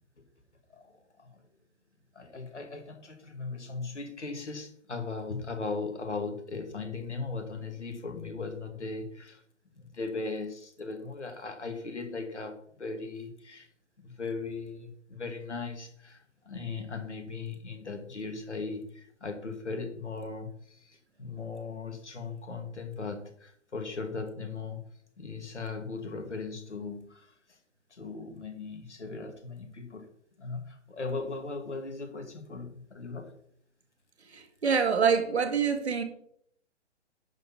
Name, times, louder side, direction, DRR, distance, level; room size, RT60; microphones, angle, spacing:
voice 1, 0.7-1.4 2.1-9.4 9.8-13.7 14.0-24.8 25.2-27.3 27.9-30.1 30.4-33.3, left 4 dB, 70° left, 5 dB, 2.2 m, -38 dB
voice 2, 34.3-36.0, right 6 dB, 60° right, 6 dB, 1.9 m, -26 dB
10.5 x 4.5 x 6.0 m, 0.67 s
figure-of-eight pair, 135°, 36 cm